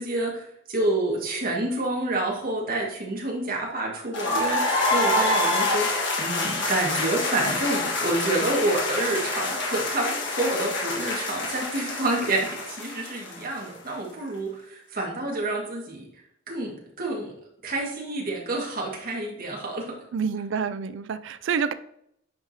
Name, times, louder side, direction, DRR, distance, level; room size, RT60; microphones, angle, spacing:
voice 1, 0.0-5.9 6.2-16.1 16.5-17.3 17.6-19.9, right 2 dB, 45° right, 1.8 m, -28 dB
sound 1, 4.1-13.9, left 2 dB, 60° left, 1.6 m, -27 dB
voice 2, 20.1-21.7, right 6 dB, 60° right, 0.4 m, -28 dB
9.4 x 4.8 x 2.7 m
head